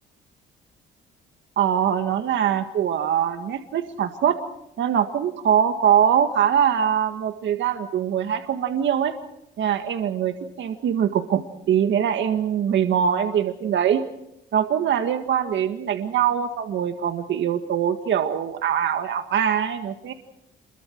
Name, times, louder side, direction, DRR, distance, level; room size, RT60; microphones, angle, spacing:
voice 1, 1.6-4.4 4.8-9.1 9.6-14.0 14.5-20.1, right 9 dB, 70° right, 7 dB, 1.8 m, -23 dB
28.5 x 22.5 x 4.6 m, 0.82 s
cardioid pair, 90°, 20 cm